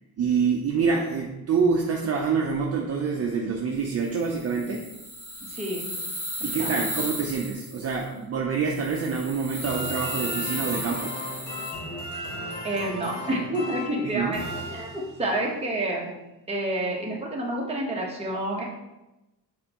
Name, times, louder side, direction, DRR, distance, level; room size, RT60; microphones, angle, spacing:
voice 1, 0.2-4.9 6.4-11.2 14.0-14.3, right 5 dB, 40° right, 0 dB, 0.6 m, -26 dB
sound 1, 4.0-8.0 8.7-11.7, equal, 10° left, 1.8 m, -35 dB
voice 2, 5.5-5.9 6.6-6.7 12.6-16.1 16.5-18.6, right 1 dB, 15° right, -3 dB, 1.1 m, -29 dB
sound 2, 9.6-15.4, left 1 dB, 45° left, 1.8 m, -36 dB
7.4 x 4.3 x 3.0 m, 0.98 s
cardioid pair, 165°, 38 cm